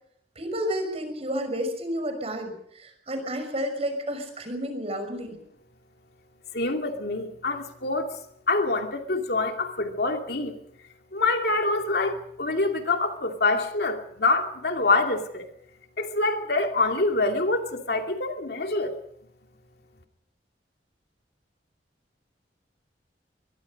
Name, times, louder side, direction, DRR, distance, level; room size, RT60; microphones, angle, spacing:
voice 1, 0.4-5.4, equal, 35° right, 7 dB, 6.0 m, -31 dB
voice 2, 6.5-8.2 8.5-10.6 11.1-15.5 16.0-18.9, left 3 dB, 60° left, 4 dB, 2.7 m, -26 dB
23.0 x 23.0 x 5.3 m, 0.69 s
head